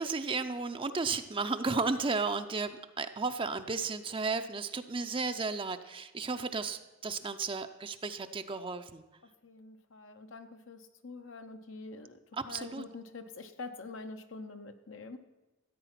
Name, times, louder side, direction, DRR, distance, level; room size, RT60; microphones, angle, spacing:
voice 1, 0.0-9.0 12.3-12.8, right 4 dB, 25° right, 8 dB, 0.5 m, -34 dB
voice 2, 9.4-12.2 12.5-15.2, left 3 dB, 70° left, 7 dB, 0.8 m, -45 dB
14.0 x 8.8 x 5.8 m, 1.1 s
head